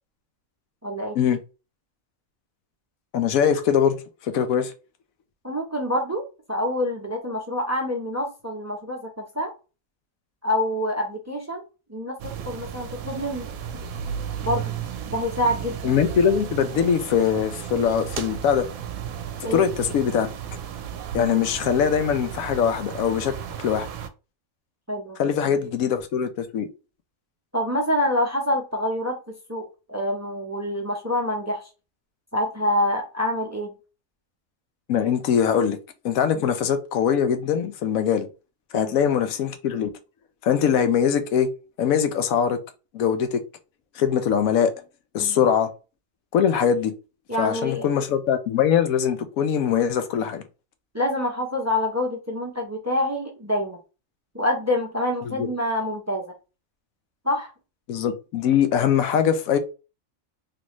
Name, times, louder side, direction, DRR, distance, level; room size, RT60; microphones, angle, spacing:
voice 1, 0.8-1.2 5.4-6.2 6.5-9.5 10.4-11.6 11.9-12.2 12.4-13.5 14.4-14.8 15.1-15.9 19.4-19.7 24.9-25.6 27.5-31.7 32.3-33.7 36.3-36.5 38.7-39.0 45.2-45.4 47.3-47.9 50.9-53.8 54.3-56.2 57.2-57.5, left 1 dB, 25° right, 0.4 m, -26 dB
voice 2, 3.1-4.0 4.2-4.7 15.8-18.7 19.5-20.3 21.1-23.9 25.2-26.7 34.9-35.8 36.0-38.3 38.7-39.9 40.4-41.5 41.8-42.6 42.9-43.4 44.0-44.7 45.1-45.7 46.3-46.9 47.4-50.4 55.3-55.5 57.9-59.6, left 8 dB, 85° left, 1.0 m, -22 dB
sound 1, 12.2-24.1, right 8 dB, 85° right, 1.0 m, -34 dB
3.3 x 2.5 x 3.0 m
omnidirectional pair, 1.4 m